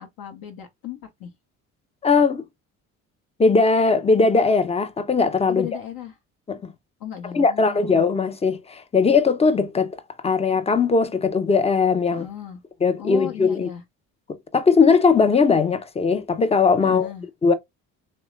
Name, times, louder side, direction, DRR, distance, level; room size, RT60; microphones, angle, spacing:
voice 1, 0.0-1.3 5.5-6.2 7.0-8.0 12.1-12.6 13.0-13.8 16.8-17.3, left 11 dB, 55° left, 0.7 m, -35 dB
voice 2, 2.0-2.4 3.4-5.7 6.5-6.6 7.3-9.9 10.2-12.3 12.8-13.7 14.5-17.1 17.4-17.5, left 4 dB, 15° left, 0.5 m, -19 dB
3.0 x 2.1 x 3.0 m
hypercardioid pair, 55°, 44 cm